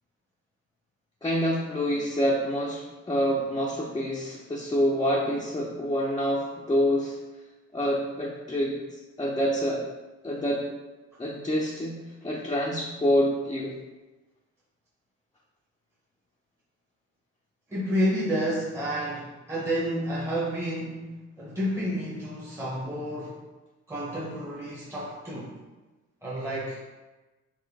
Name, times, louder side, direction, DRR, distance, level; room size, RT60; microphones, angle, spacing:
voice 1, 1.2-7.2 7.7-9.8 10.2-10.7 11.2-13.7, equal, 15° left, -4 dB, 0.6 m, -27 dB
voice 2, 17.7-23.4 23.9-25.5 26.2-26.8, equal, 10° right, -6 dB, 0.9 m, -30 dB
3.8 x 3.2 x 3.5 m, 1.2 s
cardioid pair, 90°, 30 cm